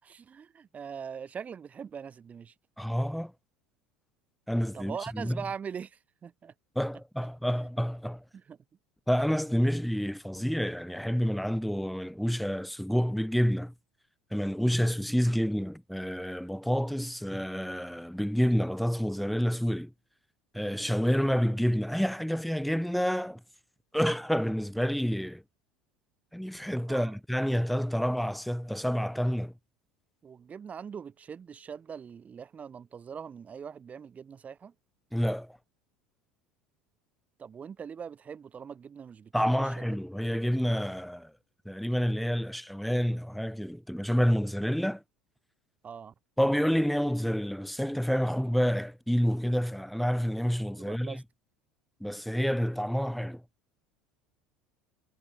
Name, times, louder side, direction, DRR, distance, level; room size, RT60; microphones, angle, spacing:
voice 1, 0.0-2.5 4.7-6.5 7.5-7.7 8.3-8.6 26.9-27.2 30.2-34.7 37.4-39.7 45.8-46.1 50.8-51.2, right 7 dB, 30° right, 7.8 m, -42 dB
voice 2, 2.8-3.3 4.5-5.4 6.7-8.2 9.1-13.7 14.3-19.9 20.5-23.4 23.9-25.4 26.3-29.5 35.1-35.6 39.3-41.3 41.6-45.0 46.4-51.2 52.0-53.4, equal, ahead, 3.0 m, -28 dB
figure-of-eight pair, 70°, 5 cm